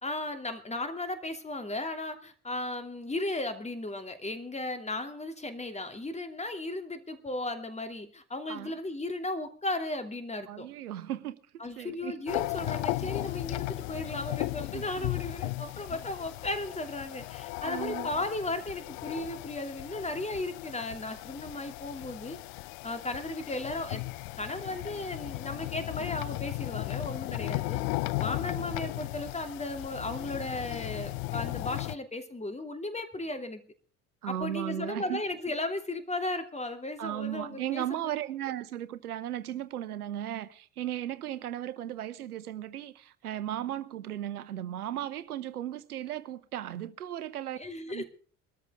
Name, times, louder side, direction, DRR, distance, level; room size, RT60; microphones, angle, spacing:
voice 1, 0.0-10.7 11.6-22.4 22.8-24.0 24.3-27.8 28.2-33.6 34.3-38.0 47.5-48.0, left 2 dB, 15° left, 2.7 m, -35 dB
voice 2, 8.5-8.8 10.5-11.3 11.8-12.2 13.0-13.1 14.7-15.1 17.6-18.1 34.2-35.2 37.0-47.6 47.9-48.0, right 12 dB, 80° right, 1.0 m, -36 dB
sound 1, 12.3-32.0, left 22 dB, 60° left, 0.6 m, -36 dB
23.0 x 13.5 x 3.6 m
figure-of-eight pair, 55°, 45 cm